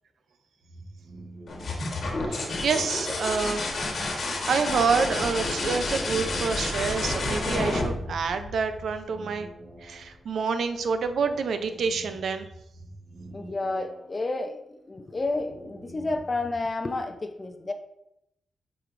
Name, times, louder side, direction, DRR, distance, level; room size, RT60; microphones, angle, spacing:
sound 1, 0.6-16.6, right 1 dB, 30° right, 1.7 m, -48 dB
sound 2, 1.5-9.1 10.8-11.4, left 2 dB, 55° left, 1.3 m, -30 dB
voice 1, 1.6-3.6 4.5-9.5 9.8-12.5, right 5 dB, 75° right, 9 dB, 0.5 m, -28 dB
voice 2, 13.3-17.7, left 2 dB, 25° left, 6 dB, 0.5 m, -31 dB
7.8 x 4.9 x 2.5 m, 0.82 s
wide cardioid pair, 145°, 0 cm